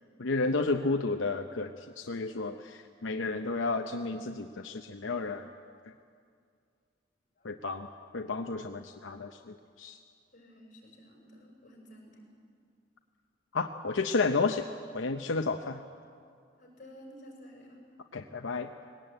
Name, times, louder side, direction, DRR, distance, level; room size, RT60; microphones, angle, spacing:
voice 1, 0.2-5.5 7.4-7.9 8.1-10.0 13.5-14.7 14.9-15.8 18.1-18.7, left 3 dB, 85° left, 5 dB, 0.8 m, -32 dB
voice 2, 7.4-8.1 10.3-12.2 16.6-17.8, equal, 45° left, 0 dB, 5.9 m, -53 dB
20.0 x 18.0 x 9.1 m, 2.2 s
head